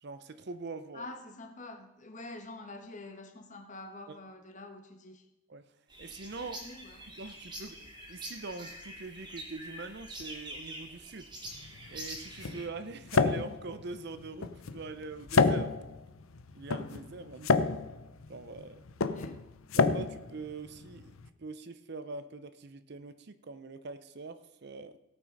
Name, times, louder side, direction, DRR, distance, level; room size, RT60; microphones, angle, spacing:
voice 1, 0.0-1.1 4.1-4.2 5.5-5.6 6.0-6.6 7.1-11.3 11.9-15.8 16.5-17.7 18.3-18.8 19.7-25.0, right 3 dB, 50° right, 12 dB, 0.6 m, -43 dB
voice 2, 0.9-5.3 6.4-7.1 19.1-19.4, left 2 dB, 35° left, 5 dB, 1.3 m, -46 dB
sound 1, 5.9-12.7, right 1 dB, 20° right, 2.5 m, -45 dB
sound 2, 11.5-21.3, left 4 dB, 75° left, 0.7 m, -30 dB
17.5 x 6.1 x 5.2 m, 0.97 s
head